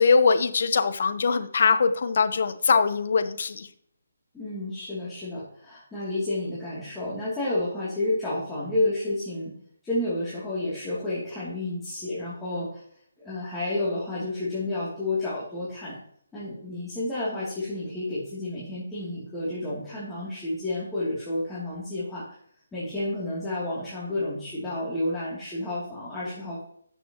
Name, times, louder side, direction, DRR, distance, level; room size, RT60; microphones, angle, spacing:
voice 1, 0.0-3.7, left 5 dB, 55° left, 11 dB, 0.9 m, -22 dB
voice 2, 4.3-9.5 9.8-12.8 13.2-16.0 16.3-22.3 22.7-26.6, left 2 dB, 10° left, -10 dB, 2.8 m, -30 dB
12.0 x 6.9 x 3.0 m, 0.66 s
figure-of-eight pair, 150°, 0 cm